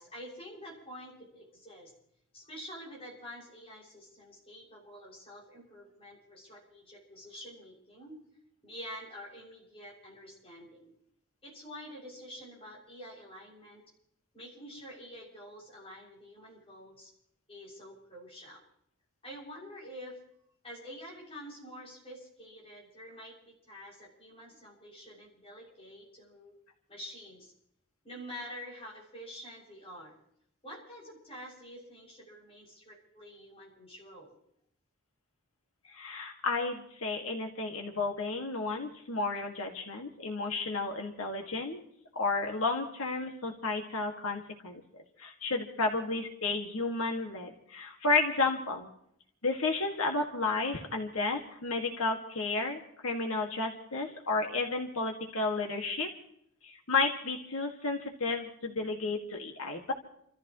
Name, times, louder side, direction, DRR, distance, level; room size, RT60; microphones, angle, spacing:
voice 1, 0.0-1.9 2.3-8.2 8.6-10.9 11.4-13.8 14.3-17.1 17.5-18.6 19.2-20.2 20.6-26.5 26.9-27.5 28.0-30.2 30.6-34.4, equal, 25° left, -4 dB, 6.9 m, -47 dB
voice 2, 35.9-41.8 42.2-44.8 45.2-48.9 49.4-56.1 56.6-59.9, left 3 dB, 85° left, 2 dB, 2.1 m, -32 dB
30.0 x 14.5 x 3.2 m, 0.71 s
head